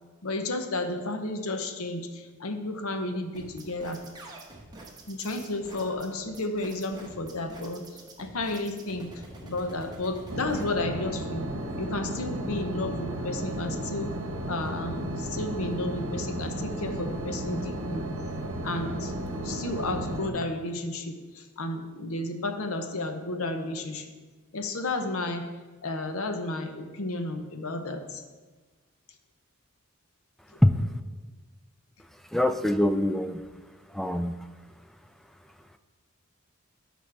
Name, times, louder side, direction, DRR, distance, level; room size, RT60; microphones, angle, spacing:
voice 1, 0.2-4.0 5.1-11.4 11.8-14.1 14.4-18.1 18.6-19.1 19.4-24.1 24.5-25.5 25.8-28.2 30.5-30.6, left 2 dB, 80° left, 6 dB, 0.8 m, -32 dB
sound 1, 3.3-10.6, right 2 dB, 20° right, 1.1 m, -46 dB
sound 2, 10.3-20.3, right 1 dB, 65° right, 1.0 m, -34 dB
voice 2, 32.3-33.4 33.9-34.4, left 1 dB, ahead, 7 dB, 0.3 m, -23 dB
12.5 x 5.1 x 3.4 m, 1.3 s
head